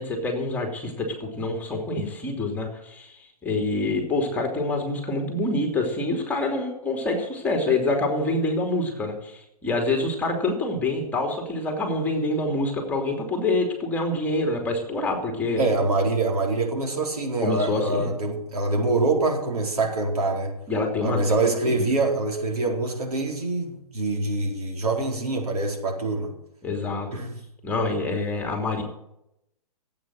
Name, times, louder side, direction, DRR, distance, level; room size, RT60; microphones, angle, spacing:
voice 1, 0.0-15.6 17.4-18.1 20.7-21.9 26.6-27.2 27.6-28.8, left 2 dB, 10° left, 2 dB, 2.9 m, -26 dB
voice 2, 15.6-20.5 21.0-26.3 27.1-27.4, right 2 dB, 75° right, 1 dB, 4.4 m, -25 dB
15.5 x 8.7 x 7.7 m, 0.82 s
hypercardioid pair, 140°, 19 cm